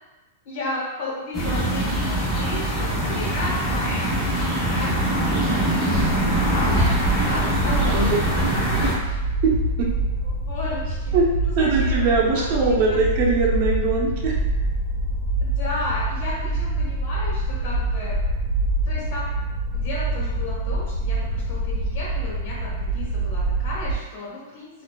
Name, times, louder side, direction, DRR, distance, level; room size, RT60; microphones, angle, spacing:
voice 1, 0.4-8.4 9.0-9.2 10.5-13.0 15.4-18.2 18.8-19.3 19.7-24.7, left 2 dB, 45° left, -7 dB, 1.4 m, -34 dB
sound 1, 1.3-8.9, right 1 dB, 15° left, 1.0 m, -23 dB
sound 2, 5.9-23.9, right 1 dB, 85° left, 1.1 m, -25 dB
voice 2, 7.6-8.5 8.8-9.0 9.4-9.9 11.1-14.4, right 4 dB, 40° right, -3 dB, 0.8 m, -22 dB
4.3 x 2.6 x 2.3 m, 1.1 s
supercardioid pair, 165°, 0 cm